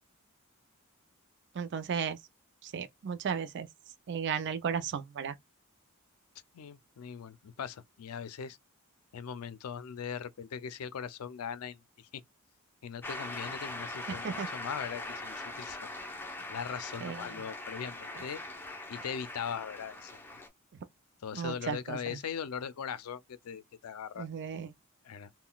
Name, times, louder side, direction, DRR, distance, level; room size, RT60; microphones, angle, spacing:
voice 1, 1.6-2.2 2.6-3.7 4.1-5.3 14.1-14.5 17.0-17.2 21.3-22.2 24.2-24.7, right 7 dB, 55° right, 0.4 m, -35 dB
voice 2, 6.5-8.6 9.1-12.2 12.8-15.8 16.5-18.4 18.9-20.4 21.2-24.3 25.0-25.3, left 7 dB, 85° left, 0.4 m, -40 dB
Shout / Cheering / Applause, 13.0-20.5, left 2 dB, 10° left, 0.7 m, -41 dB
3.7 x 2.2 x 2.2 m
head